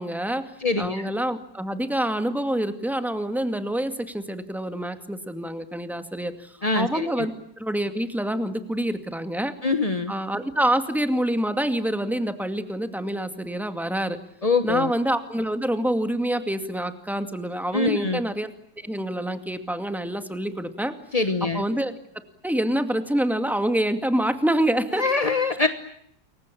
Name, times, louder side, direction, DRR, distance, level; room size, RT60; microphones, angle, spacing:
voice 1, 0.0-9.5 10.1-14.2 14.6-18.5 18.8-20.9 21.4-21.9 22.4-25.0, right 1 dB, ahead, 8 dB, 2.0 m, -26 dB
voice 2, 0.6-1.1 6.6-7.3 9.6-10.1 14.4-14.9 17.7-18.2 21.1-21.6 24.9-25.7, left 3 dB, 25° left, 8 dB, 0.8 m, -24 dB
29.0 x 23.0 x 8.6 m, 0.71 s
omnidirectional pair, 2.4 m